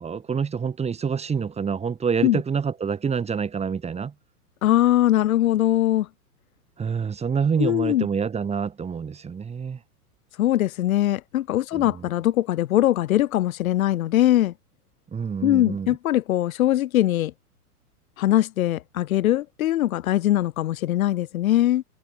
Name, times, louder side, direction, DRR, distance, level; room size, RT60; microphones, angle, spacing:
voice 1, 0.0-4.1 6.8-9.8 11.7-12.1 15.1-16.0, right 6 dB, 15° right, 2.7 m, -27 dB
voice 2, 4.6-6.1 7.6-8.1 10.4-14.5 15.4-17.3 18.2-21.8, left 13 dB, 60° left, 2.3 m, -21 dB
hypercardioid pair, 120°, 46 cm